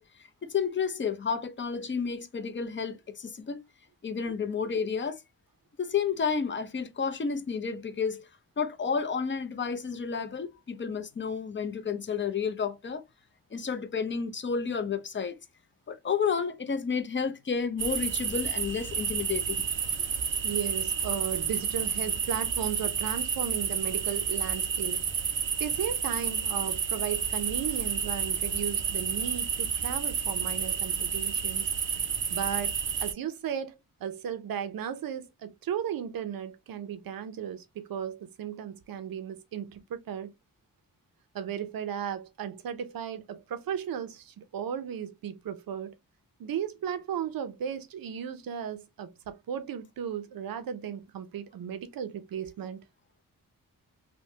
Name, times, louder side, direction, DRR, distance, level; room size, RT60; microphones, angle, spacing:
voice 1, 0.0-3.6 4.0-5.2 5.8-8.3 8.6-13.0 13.5-15.4 15.9-19.7, left 6 dB, 35° left, 0.6 m, -31 dB
sound 1, 17.8-33.1, right 6 dB, 35° right, 0.4 m, -30 dB
voice 2, 20.4-25.0 25.6-31.7 32.3-32.8 33.0-40.3 41.3-45.9 46.4-52.8, right 8 dB, 85° right, 0.6 m, -35 dB
3.3 x 2.2 x 2.7 m
cardioid pair, 70°, 34 cm